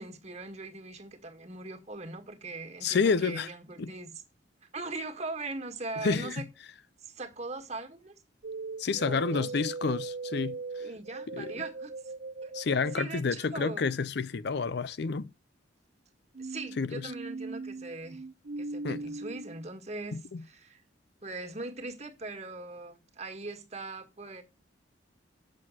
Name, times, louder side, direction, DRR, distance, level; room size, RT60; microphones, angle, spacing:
voice 1, 0.0-4.1 4.7-6.5 7.0-8.1 9.0-9.5 10.8-12.1 12.4-12.5 12.9-13.9 16.4-18.2 18.6-20.8 21.2-24.4, right 2 dB, 35° right, 1.7 m, -40 dB
voice 2, 2.8-3.5 3.8-3.9 6.0-6.3 8.8-10.8 11.3-11.5 12.5-15.3 16.8-17.1 18.8-19.0 20.1-20.4, left 4 dB, 60° left, 0.5 m, -29 dB
sound 1, 8.4-13.0 16.3-19.6, right 3 dB, 55° right, 0.6 m, -39 dB
7.6 x 6.3 x 7.5 m
head